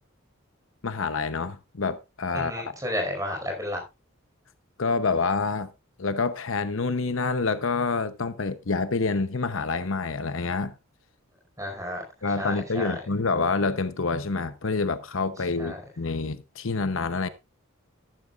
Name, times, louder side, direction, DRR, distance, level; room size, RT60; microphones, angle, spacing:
voice 1, 0.8-2.7 4.8-5.7 6.0-10.7 12.2-17.3, left 4 dB, 70° left, 0.8 m, -27 dB
voice 2, 2.3-3.8 11.6-12.0 12.4-12.9 15.6-15.8, equal, 15° right, 5.1 m, -32 dB
13.5 x 12.0 x 2.5 m
head